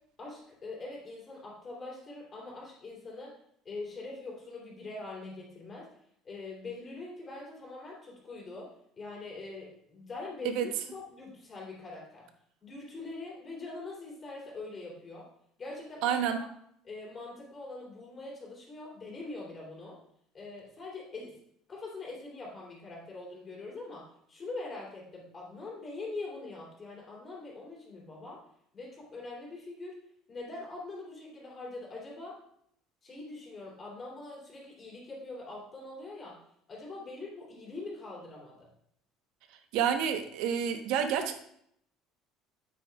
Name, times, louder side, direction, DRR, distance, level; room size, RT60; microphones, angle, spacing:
voice 1, 0.2-3.3 3.6-5.9 6.2-8.7 9.0-12.3 12.6-15.3 15.6-16.2 16.8-20.0 20.3-21.4 21.7-28.4 28.7-30.0 30.3-32.4 33.0-36.4 36.7-38.7, left 3 dB, 25° left, -3 dB, 3.0 m, -43 dB
voice 2, 16.0-16.4 39.7-41.4, right 8 dB, 70° right, 7 dB, 0.9 m, -29 dB
9.1 x 8.6 x 2.3 m, 0.69 s
cardioid pair, 155°, 0 cm